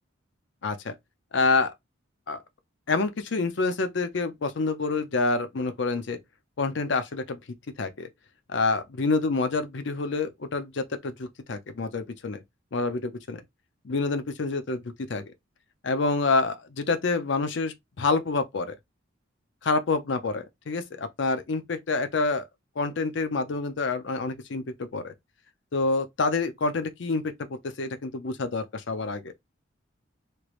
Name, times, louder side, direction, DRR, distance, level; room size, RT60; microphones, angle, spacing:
voice 1, 0.6-0.9 1.3-1.7 2.3-2.4 2.9-6.2 6.6-7.4 7.8-8.1 8.5-12.4 12.7-13.4 13.8-15.3 15.8-18.7 19.6-22.5 22.8-25.1 25.7-27.2 27.5-29.3, left 3 dB, 60° left, 0.5 m, -27 dB
3.3 x 3.1 x 2.4 m
head